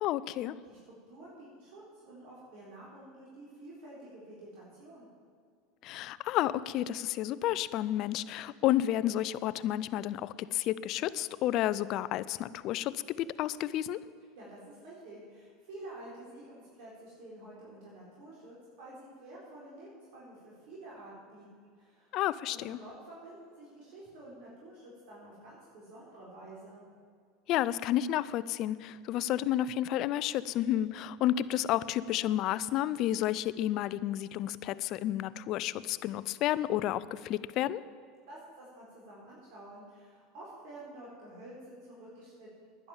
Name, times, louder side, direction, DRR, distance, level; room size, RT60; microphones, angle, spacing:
voice 1, 0.0-0.5 5.8-14.0 22.1-22.8 27.5-37.8, left 13 dB, 55° left, 17 dB, 0.5 m, -31 dB
voice 2, 0.6-5.1 14.4-22.1 22.5-26.8 38.3-42.9, right 1 dB, 65° right, -6 dB, 4.2 m, -50 dB
11.0 x 10.5 x 7.3 m, 2.2 s
supercardioid pair, 110°, 0 cm